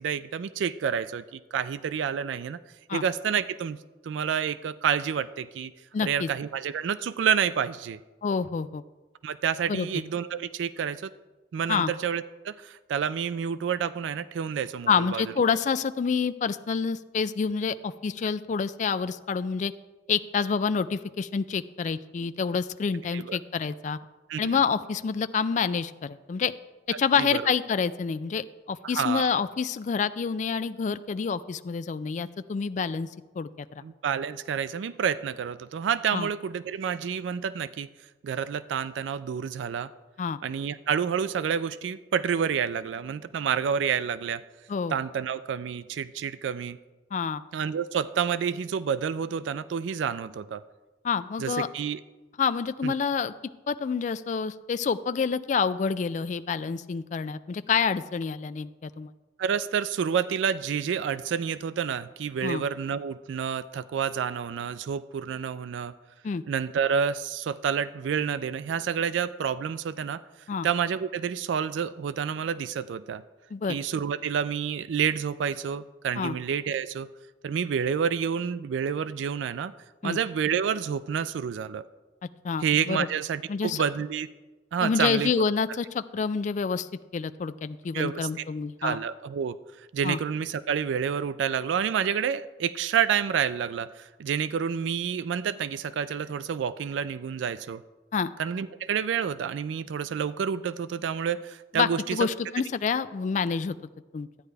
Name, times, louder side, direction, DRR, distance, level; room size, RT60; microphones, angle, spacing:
voice 1, 0.0-2.6 2.9-3.8 4.0-5.7 6.0-8.0 9.2-11.1 11.5-15.2 23.1-23.4 24.3-24.6 26.9-27.5 28.9-29.4 33.8-37.9 38.2-39.9 40.4-44.4 44.9-46.8 47.5-50.6 51.4-52.0 52.8-52.9 59.4-65.9 66.5-70.2 70.6-73.2 73.7-77.1 77.4-79.7 80.0-81.8 82.6-84.3 84.7-85.3 87.9-88.2 88.8-89.6 89.9-97.8 98.4-102.3, right 7 dB, 80° right, 15 dB, 0.3 m, -29 dB
voice 2, 5.9-6.3 8.2-8.8 9.7-9.9 11.7-11.9 14.9-19.7 20.1-24.0 24.4-26.5 26.9-33.1 33.4-33.8 36.1-36.3 40.2-40.4 44.7-45.0 47.1-47.4 51.0-51.7 52.4-53.3 53.7-59.1 62.4-62.6 66.2-66.4 70.5-70.7 73.5-73.8 76.2-76.4 80.0-80.2 82.4-83.1 83.5-83.8 84.8-89.0 90.0-90.2 98.1-98.3 101.7-103.8 104.1-104.3, left 5 dB, 40° left, 13 dB, 0.3 m, -28 dB
12.5 x 9.3 x 3.4 m, 1.2 s
head